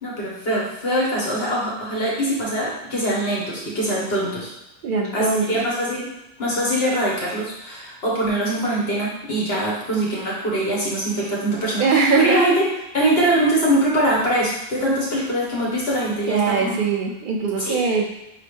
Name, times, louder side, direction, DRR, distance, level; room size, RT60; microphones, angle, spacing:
voice 1, 0.0-4.5 5.1-6.1 6.4-12.6 12.9-16.7 17.6-17.8, right 1 dB, 70° left, -4 dB, 1.6 m, -23 dB
voice 2, 4.8-5.6 11.8-12.4 16.3-18.1, right 4 dB, 60° right, 2 dB, 0.6 m, -21 dB
4.2 x 2.3 x 4.5 m, 0.91 s
omnidirectional pair, 1.1 m